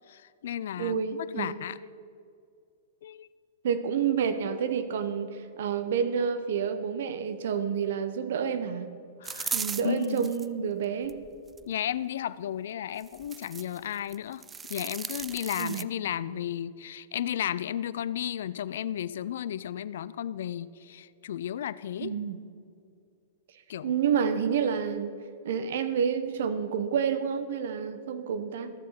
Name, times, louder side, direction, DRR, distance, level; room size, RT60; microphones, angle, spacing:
voice 1, 0.1-1.8 3.0-3.3 9.2-9.6 9.8-10.3 11.7-14.4 14.7-22.1 23.7-24.0, left 10 dB, 65° left, 17 dB, 0.3 m, -34 dB
voice 2, 0.8-1.5 3.6-8.9 9.5-11.2 15.6-15.9 22.0-22.4 23.8-25.2 25.4-28.7, right 7 dB, 65° right, 11 dB, 0.9 m, -29 dB
sound 1, 9.2-10.5 11.0-11.6 13.0-13.8 14.1-15.8, right 5 dB, 15° right, 0.3 m, -36 dB
13.5 x 7.4 x 5.8 m, 2.3 s
hypercardioid pair, 110°, 0 cm